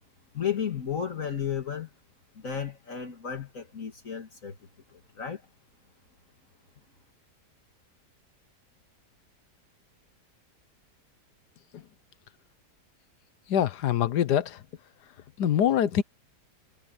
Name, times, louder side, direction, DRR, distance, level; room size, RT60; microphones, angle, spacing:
voice 1, 0.3-1.9 2.4-4.6 4.9-5.4, left 8 dB, 55° left, 2.1 m, -33 dB
voice 2, 13.5-14.6 15.4-16.0, left 10 dB, 80° left, 1.5 m, -24 dB
omnidirectional pair, 1.7 m